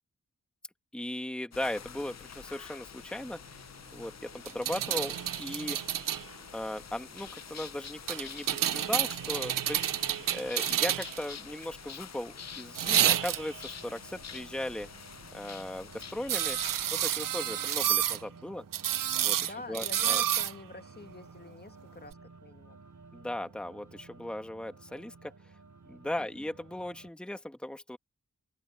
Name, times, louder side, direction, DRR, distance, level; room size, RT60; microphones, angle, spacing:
voice 1, 0.9-3.5 3.9-5.8 6.5-10.0 10.3-14.9 15.3-16.6 16.9-18.6 19.2-20.2 23.1-25.3 25.8-28.0, left 1 dB, 5° left, 1.3 m, -37 dB
sound 1, 1.5-16.9, left 7 dB, 55° left, 0.7 m, -47 dB
sound 2, 4.4-6.2 8.1-11.2 12.7-13.6 16.3-18.2 18.7-20.5 22.1-22.2, right 11 dB, 80° right, 0.5 m, -29 dB
sound 3, 12.4-27.1, right 4 dB, 60° right, 3.3 m, -54 dB
voice 2, 19.4-22.8 26.2-26.5, left 3 dB, 30° left, 1.4 m, -47 dB
open air
wide cardioid pair, 90°, 33 cm